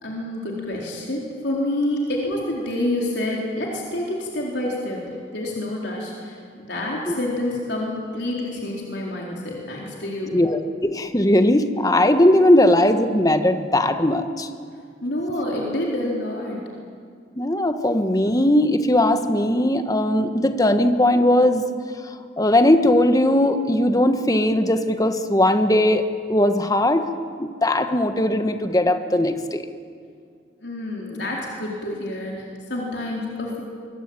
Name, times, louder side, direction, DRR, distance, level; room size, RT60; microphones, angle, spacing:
voice 1, 0.0-5.0 5.3-10.4 15.0-16.6 30.6-33.6, left 1 dB, 65° left, -2 dB, 4.2 m, -28 dB
voice 2, 10.3-14.5 17.3-21.7 22.0-27.1 27.4-29.7, left 1 dB, 20° left, 8 dB, 1.4 m, -19 dB
24.0 x 23.0 x 9.0 m, 2.2 s
head